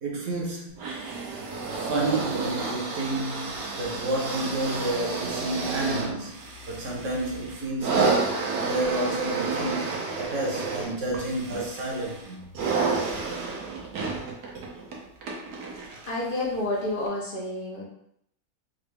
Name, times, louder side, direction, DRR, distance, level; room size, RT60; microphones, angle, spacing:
voice 1, 0.0-0.8 1.7-12.4, right 2 dB, 60° right, 1.0 m, -30 dB
sound 1, 0.8-16.2 17.1-17.2, right 4 dB, 90° right, 1.3 m, -31 dB
voice 2, 16.1-17.8, left 2 dB, 45° left, 0.7 m, -29 dB
3.9 x 2.5 x 3.3 m
omnidirectional pair, 1.7 m